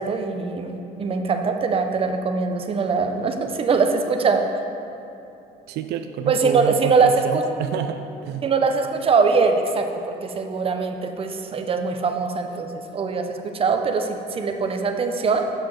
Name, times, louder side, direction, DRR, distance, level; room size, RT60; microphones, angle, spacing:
voice 1, 0.0-4.5 6.3-7.4 8.4-15.5, right 4 dB, 35° right, 5 dB, 0.6 m, -22 dB
voice 2, 5.7-8.4, right 8 dB, 75° right, 7 dB, 0.4 m, -29 dB
6.4 x 6.2 x 4.8 m, 2.7 s
cardioid pair, 110°, 17 cm